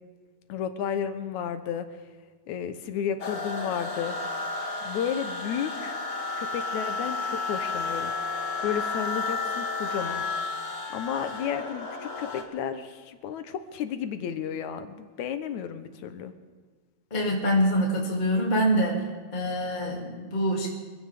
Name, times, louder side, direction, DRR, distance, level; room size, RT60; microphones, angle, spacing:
voice 1, 0.5-1.9 2.5-4.2 4.8-6.0 6.4-8.1 8.6-10.3 10.9-16.3, left 8 dB, 80° left, 9 dB, 2.3 m, -32 dB
sound 1, 3.2-12.4, left 3 dB, 50° left, 2.3 m, -32 dB
voice 2, 17.1-19.0 19.3-20.7, equal, 15° left, -2 dB, 2.3 m, -25 dB
24.5 x 16.0 x 3.6 m, 1.5 s
omnidirectional pair, 3.4 m